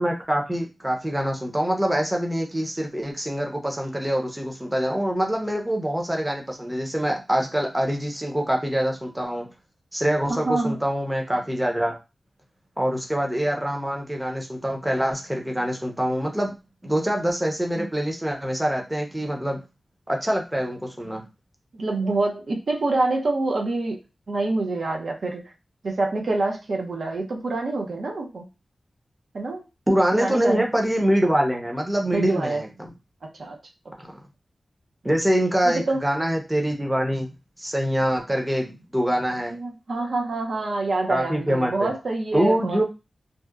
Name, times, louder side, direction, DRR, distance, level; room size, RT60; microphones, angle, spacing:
voice 1, 0.0-9.5 9.9-12.0 12.8-16.6 16.8-19.6 20.1-21.2 29.9-32.9 34.0-34.2 35.0-37.3 37.6-39.6 41.1-41.9 42.3-42.8, equal, 10° right, 1 dB, 0.5 m, -25 dB
voice 2, 10.3-10.8 21.7-24.0 24.3-25.4 25.8-28.4 29.3-29.6 30.2-30.6 32.1-32.6 33.4-33.6 35.6-36.0 39.5-42.8, right 2 dB, 75° right, 1 dB, 0.5 m, -26 dB
2.7 x 2.1 x 2.3 m, 0.27 s
wide cardioid pair, 105°, 0 cm